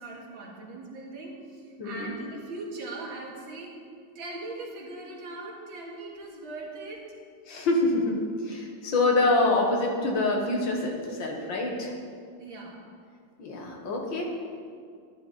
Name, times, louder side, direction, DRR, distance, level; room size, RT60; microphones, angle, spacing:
voice 1, 0.0-3.7 4.1-7.0 12.4-12.8, right 2 dB, 85° right, -2 dB, 2.7 m, -40 dB
voice 2, 1.8-2.1 7.5-11.9 13.4-14.2, left 2 dB, 75° left, 0 dB, 2.2 m, -26 dB
13.5 x 11.0 x 4.2 m, 2.2 s
omnidirectional pair, 2.1 m